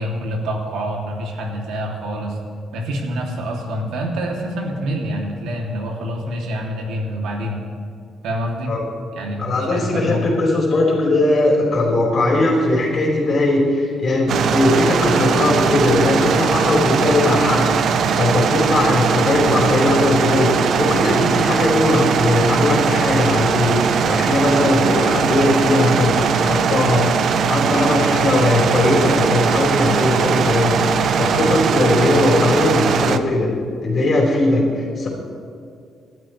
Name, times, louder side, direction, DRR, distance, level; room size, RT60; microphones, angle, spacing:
voice 1, 0.0-2.4 2.7-7.6 8.2-8.7 9.1-10.5, equal, 85° right, -1 dB, 2.9 m, -26 dB
voice 2, 9.4-17.7 18.1-33.5 33.8-35.1, left 2 dB, 35° left, -3 dB, 4.5 m, -19 dB
sound 1, 14.3-33.2, right 6 dB, 50° right, 0.7 m, -19 dB
28.5 x 12.5 x 3.3 m, 2.3 s
cardioid pair, 165°, 0 cm